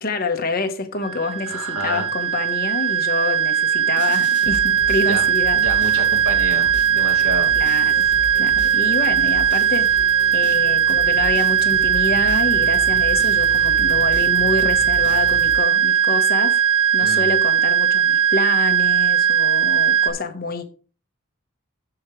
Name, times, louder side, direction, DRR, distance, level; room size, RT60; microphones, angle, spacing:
voice 1, 0.0-5.6 7.5-8.0 8.4-9.9 10.3-16.6 16.9-20.6, left 3 dB, 45° left, 1.1 m, -27 dB
sound 1, 1.0-20.1, right 9 dB, 70° right, 1.0 m, -19 dB
voice 2, 1.5-2.1 5.0-5.3 5.6-7.5 17.0-17.3, right 1 dB, 90° right, 2.3 m, -29 dB
sound 2, 4.0-16.1, equal, 40° right, 2.8 m, -35 dB
14.5 x 4.9 x 3.2 m
head